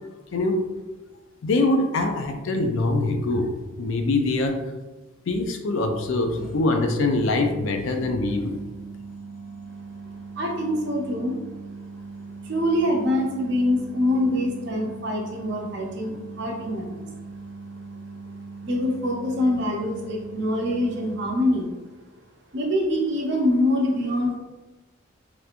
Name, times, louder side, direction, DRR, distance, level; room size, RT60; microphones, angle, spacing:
voice 1, 0.3-0.7 1.4-3.5 3.8-4.6 5.3-8.6, left 2 dB, 60° left, 5 dB, 0.4 m, -23 dB
sound 1, 3.5-3.7 6.4-21.5, right 3 dB, 40° left, 0.9 m, -40 dB
voice 2, 10.4-11.4 12.4-17.1 18.6-21.7 22.5-24.4, left 1 dB, 55° right, 0 dB, 0.6 m, -24 dB
3.3 x 2.9 x 2.4 m, 1.1 s
head